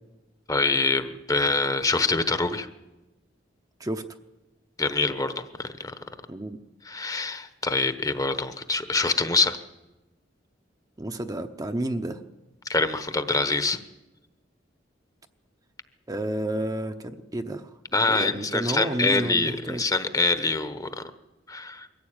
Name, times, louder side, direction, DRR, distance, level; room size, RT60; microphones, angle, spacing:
voice 1, 0.5-2.7 4.8-5.9 6.8-9.6 12.7-13.8 17.9-20.9 21.5-21.9, left 3 dB, 20° left, 10 dB, 1.0 m, -25 dB
voice 2, 6.3-6.6 11.0-12.2 16.1-17.7 18.0-19.8, right 1 dB, 20° right, 6 dB, 0.8 m, -30 dB
22.5 x 14.5 x 8.9 m, 1.1 s
head